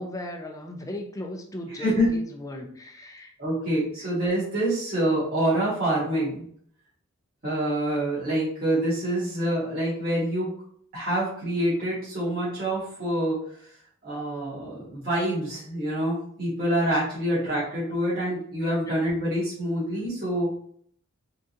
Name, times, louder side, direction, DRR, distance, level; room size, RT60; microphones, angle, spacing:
voice 1, 0.0-3.3 4.0-4.1, left 1 dB, 15° left, 2 dB, 0.6 m, -37 dB
voice 2, 1.8-2.2 3.4-6.4 7.4-10.5 10.9-13.4 14.0-20.5, right 1 dB, 45° right, -9 dB, 1.8 m, -26 dB
3.8 x 3.8 x 2.8 m, 0.62 s
head